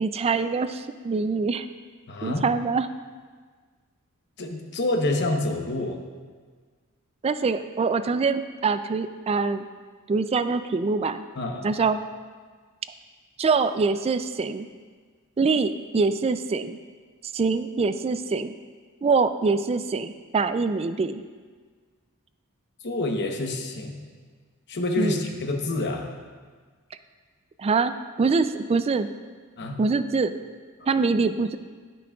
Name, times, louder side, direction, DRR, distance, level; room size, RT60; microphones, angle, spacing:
voice 1, 0.0-1.7 2.2-2.9 7.2-9.7 10.1-11.2 11.6-12.0 13.4-14.7 15.4-16.8 17.3-18.5 19.0-21.2 25.0-25.2 27.6-29.1 29.8-30.3 30.9-31.6, right 4 dB, 30° right, 11 dB, 0.3 m, -24 dB
voice 2, 2.1-2.4 4.4-6.0 11.3-11.8 22.8-24.0 24.7-26.1 29.6-29.8 30.8-30.9, left 2 dB, 55° left, 3 dB, 0.9 m, -28 dB
18.0 x 6.1 x 2.4 m, 1.5 s
head